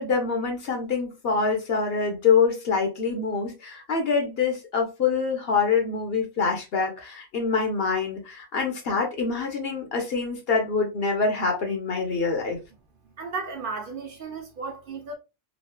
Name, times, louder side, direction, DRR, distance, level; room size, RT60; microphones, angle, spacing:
voice 1, 0.0-12.6, left 5 dB, 65° left, 1.1 m, -25 dB
voice 2, 13.2-15.1, right 4 dB, 55° right, 0.8 m, -34 dB
3.1 x 2.5 x 2.2 m
omnidirectional pair, 1.1 m